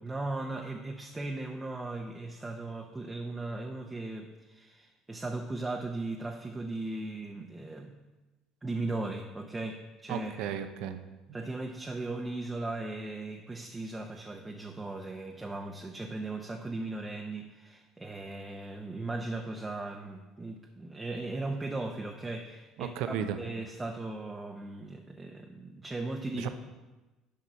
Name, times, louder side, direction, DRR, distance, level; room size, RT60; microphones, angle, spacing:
voice 1, 0.0-7.9 8.6-10.6 11.3-26.5, right 2 dB, 15° right, 2 dB, 0.7 m, -37 dB
voice 2, 10.1-11.0 22.8-23.4 26.3-26.5, right 9 dB, 70° right, 9 dB, 0.6 m, -34 dB
7.1 x 5.1 x 6.1 m, 1.1 s
supercardioid pair, 85°, 0 cm